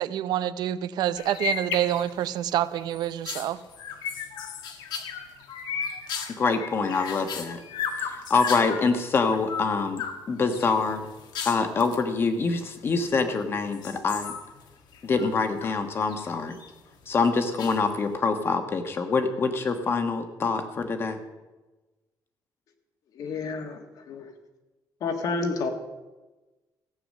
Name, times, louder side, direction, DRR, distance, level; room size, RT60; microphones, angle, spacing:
voice 1, 0.0-3.6, right 11 dB, 70° right, 15 dB, 0.6 m, -27 dB
sound 1, 1.2-2.4 2.8-8.9 9.3-10.2 10.5-12.0 12.8-13.4 13.7-15.8 16.1-16.7 17.6-18.1, left 6 dB, 75° left, 1.5 m, -35 dB
voice 2, 6.4-7.6 8.0-11.1 11.4-14.3 15.0-16.6 17.1-21.2, left 4 dB, 30° left, 7 dB, 1.2 m, -25 dB
voice 3, 23.1-24.3 25.0-25.7, left 4 dB, 55° left, 6 dB, 1.7 m, -30 dB
15.0 x 8.9 x 6.5 m, 1.1 s
cardioid pair, 175°, 7 cm